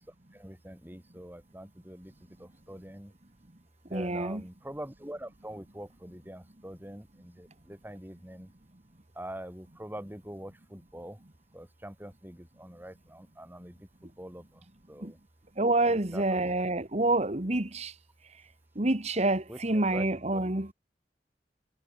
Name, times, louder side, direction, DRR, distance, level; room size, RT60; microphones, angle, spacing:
voice 1, 0.3-2.1 2.4-3.1 3.9-8.5 9.2-11.2 11.5-13.8 14.0-15.2 15.9-16.4 19.5-20.1 20.3-20.4, right 1 dB, 10° right, 4.1 m, -44 dB
voice 2, 3.9-4.4 15.0-15.1 15.6-17.9 18.8-20.7, right 2 dB, 40° right, 1.8 m, -27 dB
head